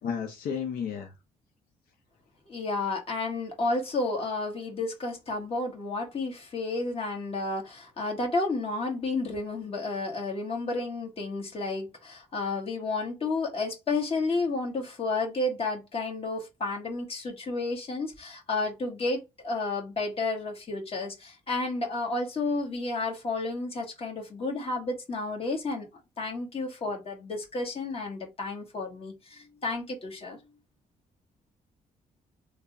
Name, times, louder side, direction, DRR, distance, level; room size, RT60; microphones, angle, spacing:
voice 1, 0.0-1.1, left 7 dB, 75° left, 0.6 m, -32 dB
voice 2, 2.5-25.9 26.2-30.4, left 3 dB, 40° left, 1.4 m, -31 dB
3.3 x 2.1 x 3.6 m
cardioid pair, 85°, 15 cm